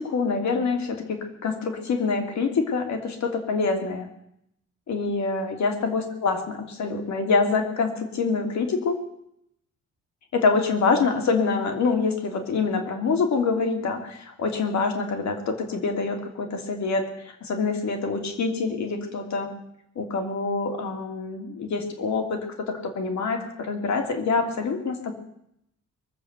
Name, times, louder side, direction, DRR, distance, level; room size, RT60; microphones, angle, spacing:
voice 1, 0.0-4.1 4.9-9.0 10.3-19.5 20.0-22.4 22.7-25.1, left 4 dB, 70° left, 4 dB, 2.8 m, -26 dB
22.5 x 7.6 x 8.0 m, 0.77 s
cardioid pair, 100°, 29 cm